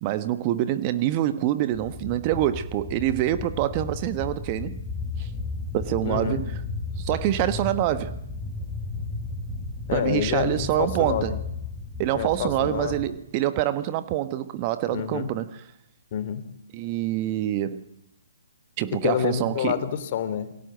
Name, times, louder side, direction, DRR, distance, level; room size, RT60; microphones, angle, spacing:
voice 1, 0.0-4.8 5.2-5.3 5.7-6.5 7.0-8.2 9.9-11.4 12.0-15.5 16.7-17.8 18.8-19.8, right 13 dB, 30° right, 1.3 m, -26 dB
sound 1, 1.7-13.1, left 3 dB, 5° left, 4.4 m, -34 dB
voice 2, 6.0-6.4 9.9-11.4 12.1-13.0 14.9-15.3 16.1-16.4 18.9-20.6, left 9 dB, 45° left, 3.1 m, -28 dB
28.5 x 22.0 x 8.0 m
figure-of-eight pair, 135°, 0 cm